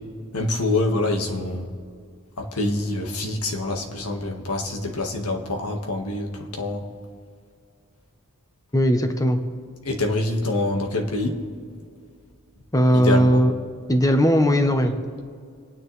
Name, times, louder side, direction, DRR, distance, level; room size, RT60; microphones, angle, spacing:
voice 1, 0.3-1.7 2.4-6.9 9.9-11.4 12.9-13.4, left 2 dB, 80° left, 2 dB, 1.7 m, -26 dB
voice 2, 8.7-9.4 12.7-13.5 13.9-14.9, equal, 15° left, 5 dB, 0.9 m, -18 dB
26.5 x 9.7 x 3.3 m, 2.2 s
head